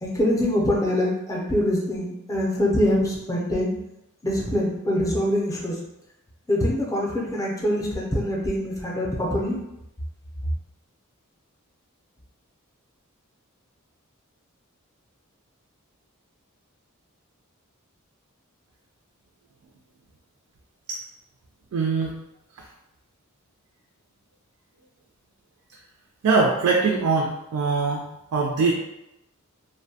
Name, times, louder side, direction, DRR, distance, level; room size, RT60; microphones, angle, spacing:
voice 1, 0.0-3.7 4.2-5.8 6.5-9.6, left 1 dB, 15° left, -2 dB, 0.5 m, -24 dB
voice 2, 21.7-22.1 26.2-28.1 28.3-28.7, right 4 dB, 80° right, 0 dB, 0.4 m, -22 dB
2.6 x 2.1 x 2.7 m, 0.88 s
head